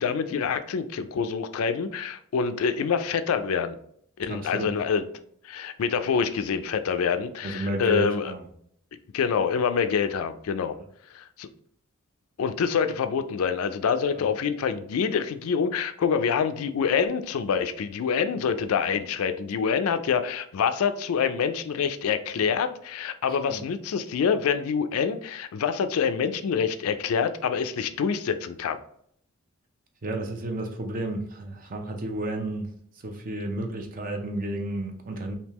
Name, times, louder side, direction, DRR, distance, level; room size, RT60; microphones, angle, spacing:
voice 1, 0.0-3.8 4.2-5.1 5.4-8.3 9.1-10.7 11.1-11.5 12.4-28.8, left 6 dB, 80° left, 0.4 m, -26 dB
voice 2, 4.3-4.7 7.4-8.5 14.1-14.2 23.4-23.6 30.0-32.7 32.9-35.3, right 1 dB, 40° right, 0.6 m, -32 dB
3.5 x 2.7 x 2.9 m
head